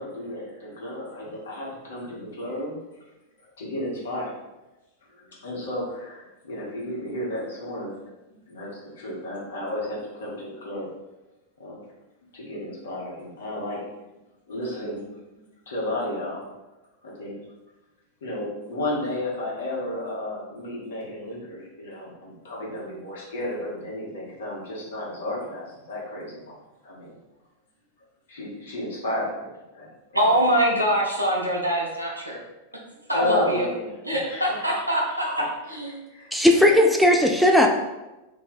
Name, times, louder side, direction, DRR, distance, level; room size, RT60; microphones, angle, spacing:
voice 1, 0.0-2.8 3.6-4.3 5.1-8.1 8.5-10.9 11.6-11.8 12.3-13.8 14.5-15.0 15.3-15.4 15.7-16.4 17.0-17.3 18.2-26.5 26.8-27.1 28.3-30.3 32.7-32.8 33.1-36.6, left 1 dB, 65° left, -5 dB, 1.2 m, -33 dB
voice 2, 30.1-32.4 33.1-33.7 34.1-35.4 35.7-36.0, equal, 85° right, -2 dB, 0.8 m, -23 dB
voice 3, 36.3-37.7, left 1 dB, ahead, 2 dB, 0.3 m, -17 dB
3.0 x 2.8 x 4.0 m, 1.0 s
figure-of-eight pair, 90°, 0 cm